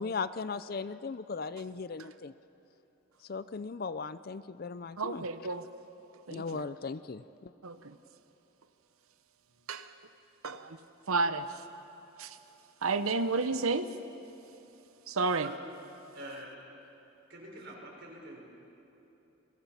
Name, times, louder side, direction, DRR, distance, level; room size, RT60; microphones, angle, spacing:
voice 1, 0.0-2.3 3.2-5.2 6.3-7.5, left 4 dB, 45° left, 14 dB, 0.4 m, -37 dB
voice 2, 5.0-5.6 6.3-6.6 7.6-7.9 9.7-9.9 10.4-10.8 11.1-11.6 12.2-12.4 12.8-13.9 15.1-15.5, right 3 dB, 85° right, 10 dB, 0.9 m, -31 dB
voice 3, 16.1-16.6 17.3-18.4, right 1 dB, 55° right, -2 dB, 5.0 m, -45 dB
29.5 x 22.5 x 5.7 m, 3.0 s
head